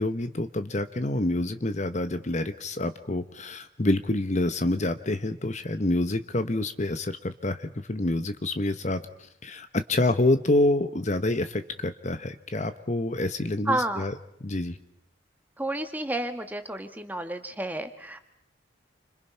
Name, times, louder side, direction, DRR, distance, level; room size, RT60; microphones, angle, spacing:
voice 1, 0.0-14.1 14.4-14.8, left 2 dB, 35° left, 10 dB, 1.0 m, -27 dB
voice 2, 13.6-14.1 15.6-18.2, right 1 dB, 10° right, 7 dB, 1.8 m, -30 dB
29.5 x 26.0 x 5.7 m, 0.76 s
head